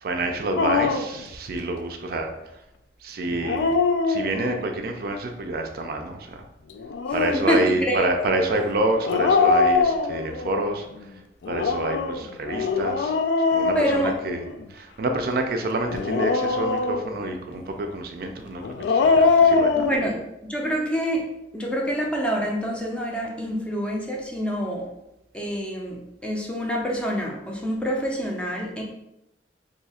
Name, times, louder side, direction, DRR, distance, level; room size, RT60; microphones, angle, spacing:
voice 1, 0.0-2.3 3.0-3.8 4.1-6.4 7.1-10.9 11.5-13.1 13.5-14.4 14.7-18.6 18.9-19.7, right 2 dB, 55° right, 4 dB, 0.4 m, -27 dB
Dog, 0.6-1.2 3.3-4.7 6.8-7.5 9.0-10.5 11.4-14.6 15.9-17.3 18.6-20.0, left 4 dB, 75° left, 0.3 m, -22 dB
voice 2, 7.1-8.0 13.7-14.2 19.7-21.3 21.5-24.9 25.3-28.8, equal, 5° left, -1 dB, 0.5 m, -27 dB
2.7 x 2.4 x 4.1 m, 0.88 s
head